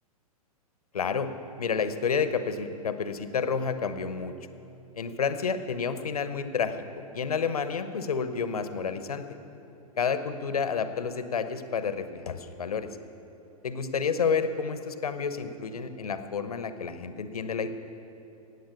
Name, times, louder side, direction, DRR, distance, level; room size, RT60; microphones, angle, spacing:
voice 1, 0.9-1.3 1.6-4.3 4.9-6.7 7.1-9.2 10.0-12.9 13.6-17.7, left 6 dB, 70° left, 11 dB, 1.0 m, -30 dB
16.0 x 9.2 x 7.1 m, 2.8 s
figure-of-eight pair, 105°, 19 cm